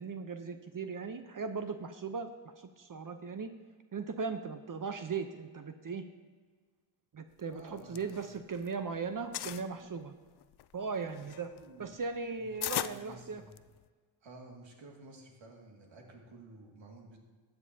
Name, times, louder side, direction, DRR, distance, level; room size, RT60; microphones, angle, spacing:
voice 1, 0.0-2.3 2.8-3.5 3.9-6.0 7.1-10.1 10.7-11.5 11.8-13.4, right 5 dB, 40° right, 8 dB, 0.8 m, -38 dB
voice 2, 7.5-8.3 11.2-12.0 12.4-13.6 14.2-17.2, right 2 dB, 65° right, 1 dB, 2.3 m, -53 dB
sound 1, 7.6-8.8 9.0-9.7 10.3-13.9, left 13 dB, 55° left, 0.5 m, -39 dB
15.0 x 9.0 x 2.8 m, 1.5 s
cardioid pair, 55°, 48 cm